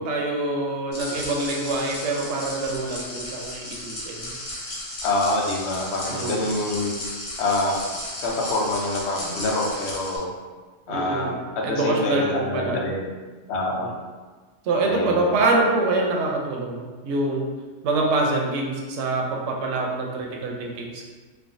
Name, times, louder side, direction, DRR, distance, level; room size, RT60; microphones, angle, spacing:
voice 1, 0.0-4.3 6.0-6.5 10.9-12.8 13.8-13.9 14.6-17.5 17.8-21.1, right 2 dB, 70° right, 0 dB, 0.8 m, -25 dB
sound 1, 0.9-10.2, left 1 dB, 40° left, 0.5 m, -35 dB
voice 2, 5.0-6.9 7.4-10.3 10.9-13.1 13.5-13.9 14.8-15.4, left 2 dB, 70° left, -1 dB, 0.8 m, -26 dB
3.2 x 2.1 x 2.5 m, 1.4 s
omnidirectional pair, 1.3 m